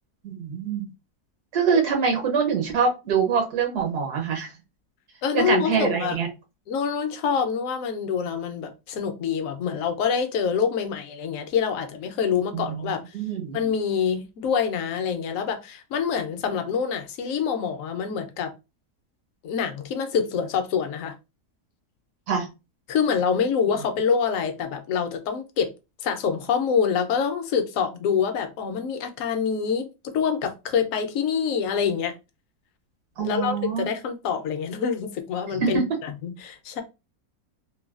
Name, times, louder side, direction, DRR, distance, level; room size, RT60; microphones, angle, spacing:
voice 1, 0.2-0.9 1.5-4.5 5.3-6.3 12.5-13.6 22.3-22.5 33.2-33.9 35.5-35.8, right 6 dB, 80° right, 1.4 m, -24 dB
voice 2, 5.2-6.2 6.7-13.0 13.5-18.5 19.4-21.1 22.9-25.7 26.0-32.1 33.2-36.8, left 6 dB, 65° left, 0.9 m, -26 dB
3.1 x 2.2 x 2.4 m
omnidirectional pair, 1.7 m